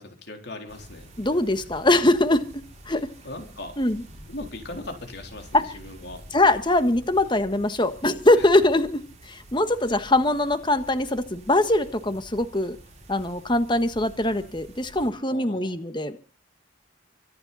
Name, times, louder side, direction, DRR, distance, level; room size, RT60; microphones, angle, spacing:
voice 1, 0.0-1.1 3.2-3.8 4.3-6.2 8.4-8.5 14.9-15.7, left 2 dB, 55° left, 4 dB, 3.8 m, -39 dB
sound 1, 0.7-15.1, right 1 dB, 35° right, 6.0 m, -47 dB
voice 2, 1.2-2.5 2.9-3.1 3.8-4.0 5.5-5.6 6.3-12.8 13.1-16.2, left 1 dB, 25° left, 10 dB, 1.5 m, -22 dB
25.0 x 10.5 x 4.2 m, 0.36 s
head